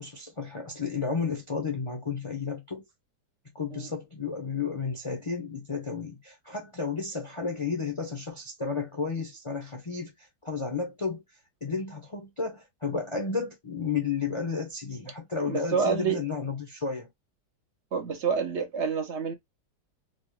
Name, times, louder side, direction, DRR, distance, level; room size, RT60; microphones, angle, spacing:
voice 1, 0.0-2.8 3.5-10.1 10.4-11.2 11.6-17.1, left 5 dB, 30° left, 0.5 m, -32 dB
voice 2, 15.5-16.2 17.9-19.3, right 6 dB, 60° right, 0.8 m, -28 dB
4.3 x 2.2 x 3.1 m
omnidirectional pair, 1.8 m